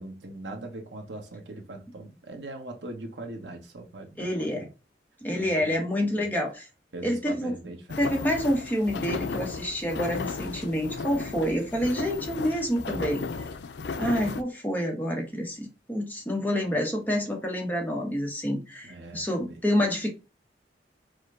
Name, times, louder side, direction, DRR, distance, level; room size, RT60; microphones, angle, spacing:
voice 1, 0.0-4.7 5.3-5.8 6.2-6.3 6.9-8.1 18.8-19.6, right 2 dB, 80° right, 1.0 m, -41 dB
voice 2, 4.2-4.7 5.2-6.6 7.0-7.5 8.0-13.2 14.0-20.1, equal, 10° left, 0.9 m, -28 dB
sound 1, 7.9-14.4, left 4 dB, 70° left, 0.4 m, -35 dB
4.9 x 2.2 x 3.7 m
head